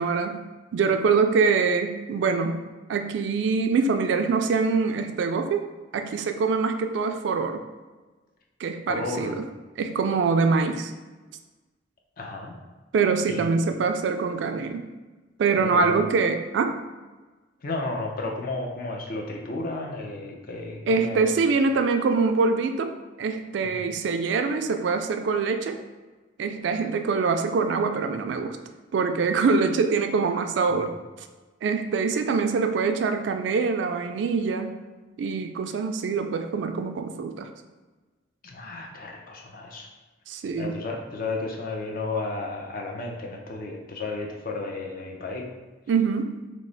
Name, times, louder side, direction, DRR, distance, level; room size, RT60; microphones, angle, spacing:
voice 1, 0.0-5.6 5.9-7.6 8.6-9.4 9.8-10.9 12.9-14.9 15.4-16.8 20.9-25.8 26.4-28.6 28.9-30.9 31.6-34.8 35.2-37.5 40.3-40.8 45.9-46.4, right 4 dB, 65° right, 6 dB, 0.3 m, -24 dB
voice 2, 8.9-9.4 12.2-12.5 13.3-13.4 15.6-16.0 17.6-21.3 23.6-23.7 38.4-39.9 40.6-45.5, left 2 dB, 50° left, 1 dB, 0.5 m, -33 dB
3.1 x 2.0 x 3.8 m, 1.2 s
head